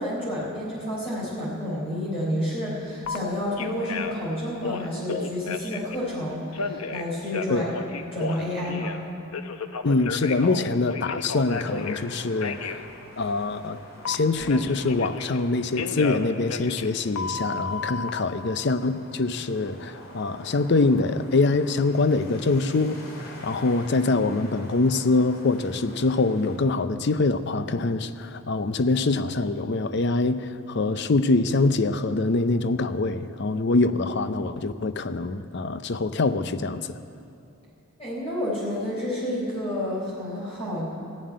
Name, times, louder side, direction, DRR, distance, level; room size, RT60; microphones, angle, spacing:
voice 1, 0.0-7.7 8.1-9.0 38.0-40.9, left 1 dB, 25° left, -6 dB, 3.9 m, -30 dB
Telephone, 3.0-3.2 3.6-4.2 4.6-6.0 6.5-9.0 9.3-12.0 12.4-12.8 14.1-15.4 15.8-18.1, left 4 dB, 85° left, 0.8 m, -32 dB
voice 2, 9.8-12.8 13.2-13.8 14.1-37.0, left 3 dB, 50° left, 12 dB, 0.5 m, -24 dB
sound 1, 11.4-26.6, left 1 dB, 70° left, 2.6 m, -46 dB
14.5 x 7.4 x 9.5 m, 2.6 s
head